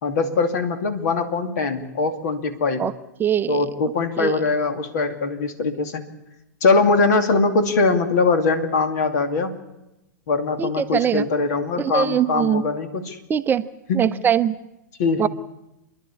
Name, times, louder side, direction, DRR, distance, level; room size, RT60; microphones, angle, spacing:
voice 1, 0.0-2.8 3.5-6.0 6.6-9.5 10.3-13.2 13.9-14.2 15.0-15.3, left 3 dB, 60° left, 8 dB, 2.5 m, -22 dB
voice 2, 3.2-3.7 4.2-4.3 10.6-11.3 11.8-12.6 13.3-13.6 13.9-14.5 15.2-15.3, right 9 dB, 20° right, 11 dB, 0.6 m, -21 dB
29.5 x 11.0 x 8.5 m, 0.92 s
hypercardioid pair, 105°, 10 cm